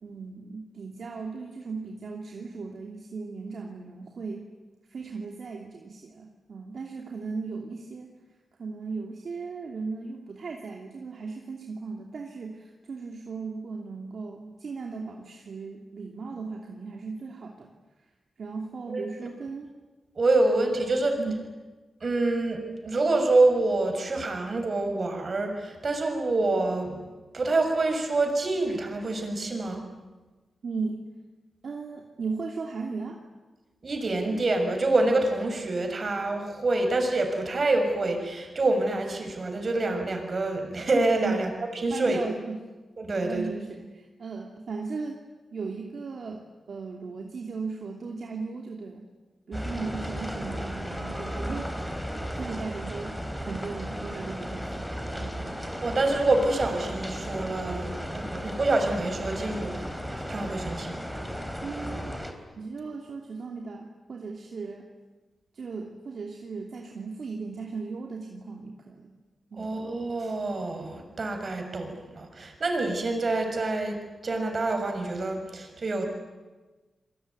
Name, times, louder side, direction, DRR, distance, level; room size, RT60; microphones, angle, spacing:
voice 1, 0.0-4.5 4.9-8.1 8.6-17.7 18.4-19.7 21.2-21.4 30.6-31.0 31.6-33.2 41.2-41.4 41.9-42.6 43.2-45.2 45.5-49.1 49.5-51.7 52.4-53.2 53.4-54.9 55.2-55.6 61.6-62.2 62.6-64.9 65.5-69.2 69.5-69.8, right 4 dB, 65° right, 1 dB, 2.9 m, -37 dB
voice 2, 20.2-21.2 22.0-27.1 27.3-29.9 33.8-41.5 41.8-42.2 43.0-43.5 55.8-59.9 60.3-61.1 69.6-76.0, right 2 dB, 45° right, 5 dB, 6.2 m, -26 dB
sound 1, 49.5-62.3, equal, ahead, 3.9 m, -35 dB
28.5 x 22.0 x 9.6 m, 1.2 s
cardioid pair, 85°, 0 cm